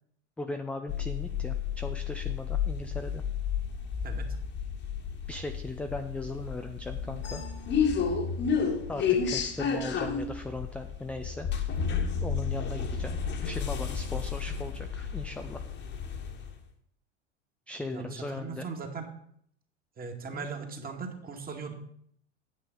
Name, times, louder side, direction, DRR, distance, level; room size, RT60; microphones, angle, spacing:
voice 1, 0.4-3.2 5.3-7.4 8.9-11.5 12.2-15.6 17.7-18.7 20.3-20.5, left 2 dB, 5° left, 6 dB, 0.5 m, -38 dB
sound 1, 0.9-16.5, left 6 dB, 30° left, 1.5 m, -31 dB
voice 2, 17.8-19.0 20.0-21.7, right 5 dB, 25° right, 4 dB, 2.0 m, -39 dB
9.2 x 8.1 x 5.4 m, 0.67 s
figure-of-eight pair, 85°, 36 cm